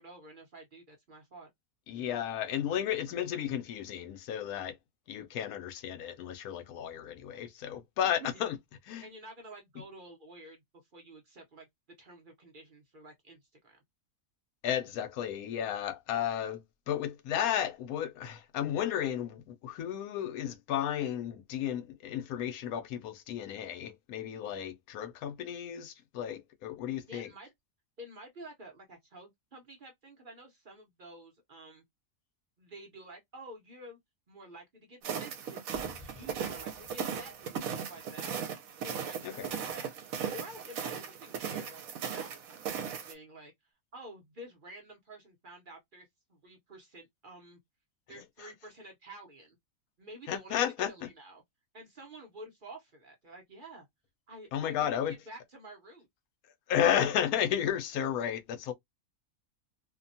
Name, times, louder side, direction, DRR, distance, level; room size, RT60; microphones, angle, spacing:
voice 1, 0.0-1.5 8.0-8.4 9.0-10.6 10.9-11.7 12.0-13.8 27.1-27.5 28.0-31.8 32.6-34.0 34.3-38.4 38.8-39.9 40.3-41.8 42.1-43.5 43.9-47.6 48.1-49.6 50.0-51.4 51.7-53.9 54.3-56.1, right 1 dB, 45° right, 0.8 m, -50 dB
voice 2, 1.9-4.8 5.1-8.6 8.9-9.1 14.6-16.6 16.9-27.3 39.2-39.5 48.4-48.5 50.3-50.9 54.5-55.2 56.7-58.7, left 10 dB, 90° left, 1.1 m, -33 dB
sound 1, 35.0-43.1, right 7 dB, 75° right, 1.1 m, -37 dB
sound 2, 35.7-38.5, left 1 dB, 20° left, 1.0 m, -54 dB
2.8 x 2.2 x 2.5 m
omnidirectional pair, 1.5 m